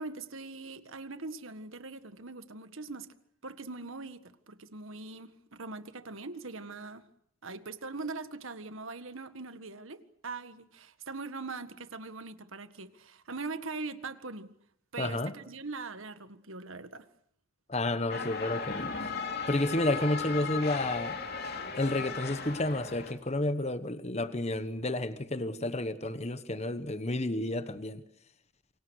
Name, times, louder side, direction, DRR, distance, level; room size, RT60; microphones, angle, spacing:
voice 1, 0.0-3.1 3.4-7.1 7.4-14.5 14.9-17.1, right 3 dB, 70° right, 1.7 m, -41 dB
voice 2, 15.0-15.3 17.7-18.9 19.5-21.2 21.8-28.0, left 1 dB, 30° left, 1.1 m, -31 dB
sound 1, 18.1-23.1, left 5 dB, 50° left, 3.0 m, -36 dB
28.5 x 25.0 x 6.5 m
head